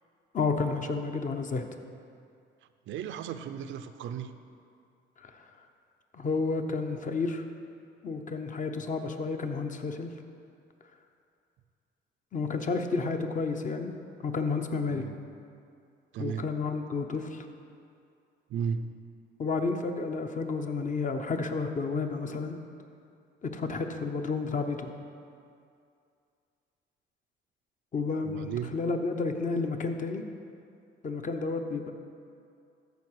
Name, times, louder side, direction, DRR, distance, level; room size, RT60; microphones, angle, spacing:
voice 1, 0.3-1.6 5.2-5.3 6.1-7.4 8.0-10.1 12.3-13.9 14.2-15.0 16.2-17.5 19.4-22.6 23.4-24.9 27.9-30.2 31.0-31.9, left 4 dB, 40° left, 5 dB, 0.8 m, -31 dB
voice 2, 2.9-4.4 14.9-15.2 16.1-16.5 18.5-19.0 28.2-28.8, right 7 dB, 75° right, 10 dB, 0.5 m, -35 dB
13.5 x 4.8 x 4.8 m, 2.4 s
cardioid pair, 90°, 20 cm